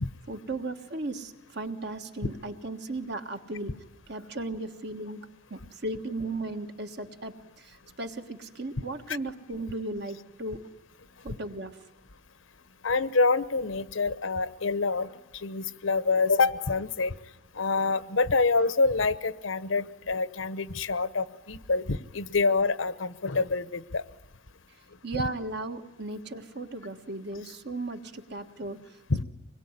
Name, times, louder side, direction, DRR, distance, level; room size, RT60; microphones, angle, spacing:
voice 1, 0.3-3.8 4.1-5.2 5.5-10.7 11.2-11.8 25.0-29.0, right 2 dB, 55° right, 7 dB, 1.6 m, -36 dB
voice 2, 12.8-17.1 17.5-24.0 29.1-29.2, left 3 dB, 80° left, 15 dB, 1.0 m, -26 dB
25.5 x 21.0 x 9.8 m, 0.90 s
head